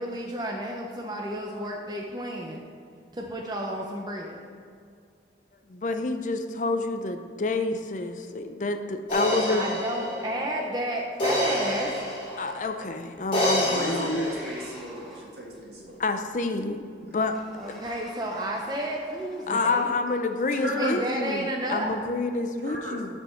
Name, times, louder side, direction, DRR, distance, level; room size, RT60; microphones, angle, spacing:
voice 1, 0.0-2.6 3.1-4.4 9.5-12.0 17.5-19.9 20.8-21.9, right 1 dB, 20° right, 0 dB, 0.6 m, -32 dB
voice 2, 5.7-9.6 12.4-14.3 16.0-17.4 17.7-17.8 19.5-23.1, left 3 dB, 45° left, 7 dB, 0.5 m, -28 dB
sound 1, 9.1-12.6 13.3-14.6, equal, 25° left, 2.0 m, -28 dB
Sliding door, 11.3-19.5, equal, ahead, 1.4 m, -47 dB
voice 3, 13.6-16.0 17.0-17.3 20.5-21.0 22.6-23.0, right 1 dB, 65° right, -2 dB, 1.9 m, -35 dB
12.5 x 4.4 x 4.4 m, 2.3 s
head